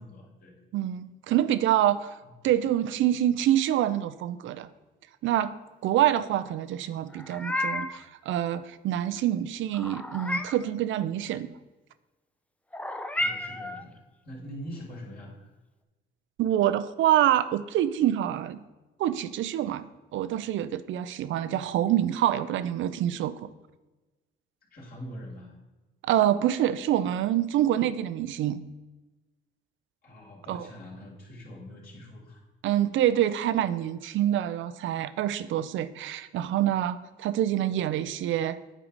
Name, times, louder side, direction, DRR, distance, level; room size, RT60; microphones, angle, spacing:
voice 1, 0.0-0.6 2.2-2.3 13.2-15.5 24.7-25.6 30.0-32.4, equal, 50° left, -3 dB, 2.6 m, -43 dB
voice 2, 0.7-2.1 2.4-4.7 5.2-5.5 5.8-11.5 16.4-18.6 19.0-23.5 26.0-28.6 30.5-30.7 32.6-38.6, right 12 dB, 75° right, 14 dB, 0.5 m, -26 dB
Meow, 7.1-8.0 9.7-10.7 12.7-13.8, left 1 dB, 5° left, 0.4 m, -32 dB
8.9 x 4.8 x 4.0 m, 1.1 s
cardioid pair, 90°, 20 cm